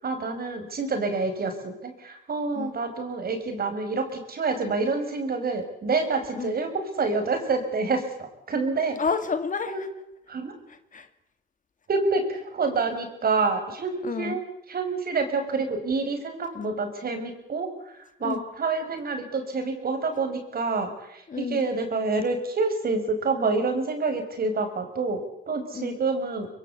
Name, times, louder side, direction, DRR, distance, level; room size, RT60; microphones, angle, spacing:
voice 1, 0.0-6.7 7.0-9.0 9.7-9.8 10.3-10.5 11.9-14.4 14.7-26.5, right 3 dB, 50° right, 5.9 m, -27 dB
voice 2, 9.0-9.9 10.7-11.1 14.0-14.4 16.5-16.8 18.2-18.4 21.3-21.7 25.5-26.0, left 5 dB, 40° left, 1.9 m, -31 dB
24.0 x 22.5 x 8.2 m
cardioid pair, 90°, 20 cm